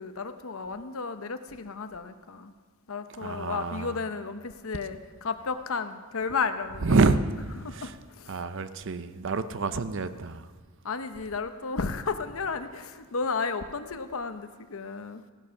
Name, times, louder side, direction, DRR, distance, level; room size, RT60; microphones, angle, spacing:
voice 1, 0.0-2.5 2.9-7.0 7.6-8.4 10.8-15.2, left 4 dB, 65° left, 0.8 m, -33 dB
voice 2, 3.2-4.0 6.8-8.0 8.3-10.5, right 3 dB, 60° right, 0.6 m, -27 dB
15.5 x 12.0 x 5.7 m
head